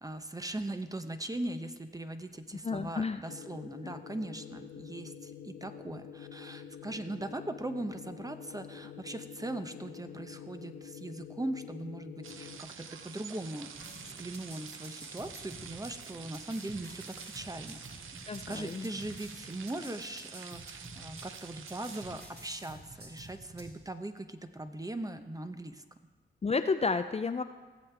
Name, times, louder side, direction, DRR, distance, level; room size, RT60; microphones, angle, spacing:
voice 1, 0.0-18.0 18.5-25.8, right 1 dB, 15° right, 8 dB, 0.9 m, -40 dB
voice 2, 2.6-3.2 3.8-3.9 18.3-18.9 26.4-27.4, left 4 dB, 30° left, 9 dB, 0.5 m, -31 dB
sound 1, 3.3-12.6, left 8 dB, 85° left, 0.7 m, -47 dB
sound 2, 12.2-22.2, right 6 dB, 75° right, 0.7 m, -48 dB
sound 3, 13.7-23.7, right 2 dB, 50° right, 2.6 m, -50 dB
17.0 x 7.2 x 3.5 m, 1.3 s
supercardioid pair, 40°, 20 cm